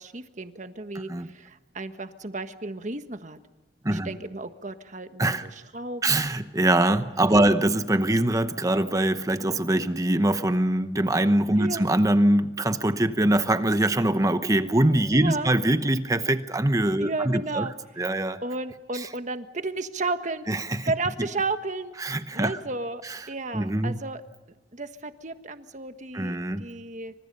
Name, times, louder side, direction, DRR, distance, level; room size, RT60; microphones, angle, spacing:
voice 1, 0.0-3.4 3.9-6.3 7.3-7.6 11.6-11.9 15.1-15.5 17.0-17.7 18.4-20.4 20.8-21.9 22.3-24.2 24.7-27.1, right 3 dB, 45° right, 1.4 m, -33 dB
voice 2, 6.0-17.7 18.0-18.4 18.9-19.1 20.5-20.9 22.0-22.6 23.0-23.2 23.5-24.0 26.1-26.6, right 1 dB, 20° right, 0.9 m, -23 dB
28.0 x 26.0 x 5.5 m
head